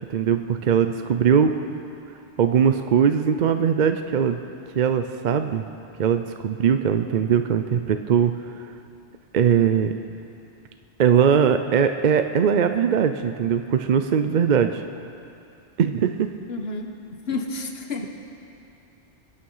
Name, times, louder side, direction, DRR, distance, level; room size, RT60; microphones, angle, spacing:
voice 1, 0.1-1.5 2.4-4.4 4.7-5.6 6.0-8.3 9.3-9.9 11.0-14.8 15.8-16.3, right 7 dB, 55° right, 8 dB, 0.6 m, -20 dB
voice 2, 16.5-18.1, left 3 dB, 60° left, 4 dB, 1.4 m, -31 dB
24.0 x 9.1 x 5.6 m, 2.7 s
omnidirectional pair, 1.2 m